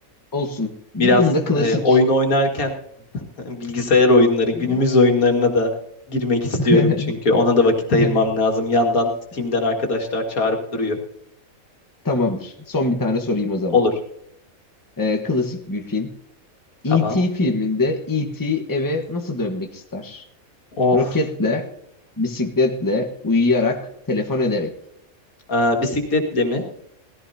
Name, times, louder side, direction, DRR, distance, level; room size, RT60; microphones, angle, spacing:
voice 1, 0.3-2.0 4.6-4.8 6.6-7.1 7.9-8.1 12.0-13.8 15.0-16.1 16.8-20.2 20.9-21.6 22.2-24.7, left 3 dB, 15° left, 4 dB, 1.2 m, -22 dB
voice 2, 1.6-2.7 3.1-5.7 6.1-11.0 13.7-13.9 16.9-17.2 20.8-21.1 25.5-26.6, left 2 dB, 85° left, 2 dB, 2.4 m, -19 dB
18.5 x 15.0 x 2.8 m, 0.71 s
omnidirectional pair, 1.5 m